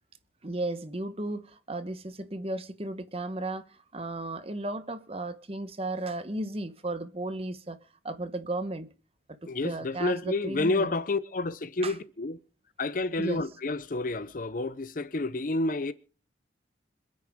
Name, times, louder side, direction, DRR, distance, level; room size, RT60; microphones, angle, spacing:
voice 1, 0.4-7.8 8.0-8.9 9.6-10.9 11.8-11.9 13.2-13.4, right 2 dB, 30° right, 1.0 m, -34 dB
voice 2, 9.4-12.4 12.8-15.9, left 2 dB, 45° left, 0.6 m, -29 dB
26.5 x 9.6 x 3.6 m
head